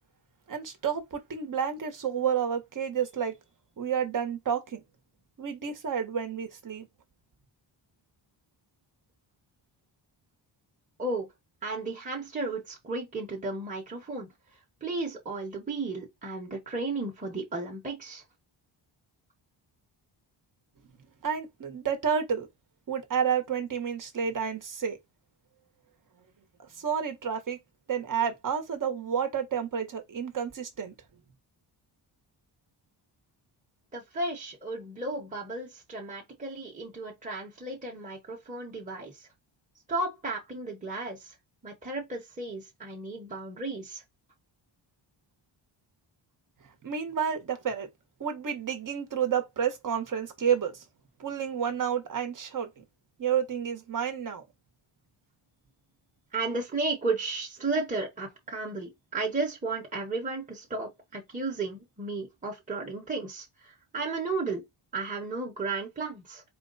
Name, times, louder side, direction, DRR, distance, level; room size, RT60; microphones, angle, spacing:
voice 1, 0.5-3.4 3.8-4.8 5.4-6.9 21.2-22.5 22.9-25.0 26.6-27.6 27.9-30.9 46.8-47.9 48.2-50.8 51.2-52.8 53.2-54.5, right 7 dB, 40° right, 1.2 m, -30 dB
voice 2, 11.6-14.3 14.8-18.2 33.9-39.1 39.9-41.3 41.6-44.0 56.3-64.6 64.9-66.4, right 3 dB, 15° right, 1.2 m, -34 dB
4.4 x 2.3 x 4.0 m
wide cardioid pair, 120°, 47 cm